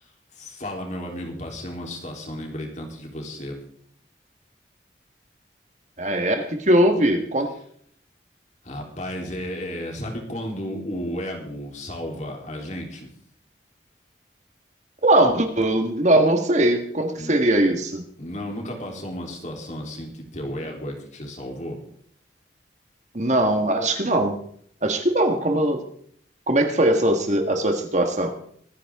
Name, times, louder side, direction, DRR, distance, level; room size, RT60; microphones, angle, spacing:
voice 1, 0.3-3.6 8.6-13.1 17.2-17.4 18.2-21.8, equal, 40° left, 1 dB, 3.7 m, -33 dB
voice 2, 6.0-7.5 15.0-18.0 23.1-24.4 24.8-25.8 26.5-28.3, right 1 dB, 40° right, 5 dB, 1.8 m, -20 dB
24.0 x 10.5 x 3.8 m, 0.63 s
head